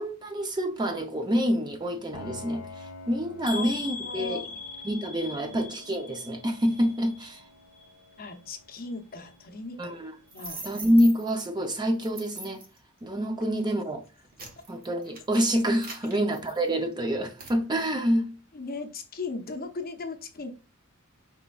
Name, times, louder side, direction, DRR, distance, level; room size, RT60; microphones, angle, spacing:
voice 1, 0.0-4.4 4.8-7.4 9.8-10.1 10.6-12.6 13.0-14.0 14.7-18.3, equal, 20° right, 0.5 m, -27 dB
Piano, 2.1-11.7, left 2 dB, 85° left, 0.6 m, -49 dB
sound 1, 3.5-7.4 7.7-8.4 8.8-8.9 9.3-9.4, left 4 dB, 5° left, 1.0 m, -40 dB
voice 2, 4.0-4.6 8.2-9.9 10.3-10.6 18.5-20.5, left 3 dB, 45° left, 0.7 m, -37 dB
sound 2, 10.3-11.5 12.0-12.8 13.4-13.6 14.1-16.9 17.4-17.6, right 2 dB, 45° right, 1.0 m, -42 dB
5.2 x 3.3 x 2.3 m
head